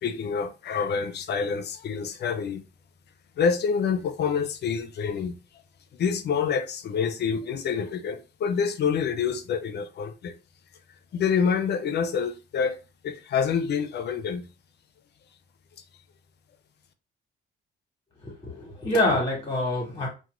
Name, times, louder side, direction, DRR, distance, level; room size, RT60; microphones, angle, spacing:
voice 1, 0.0-2.6 3.4-5.4 5.9-10.4 11.1-12.8 13.0-14.5, left 6 dB, 55° left, 0.5 m, -27 dB
voice 2, 18.2-20.1, left 1 dB, 25° left, 1.0 m, -26 dB
2.4 x 2.2 x 3.0 m
cardioid pair, 90°, 20 cm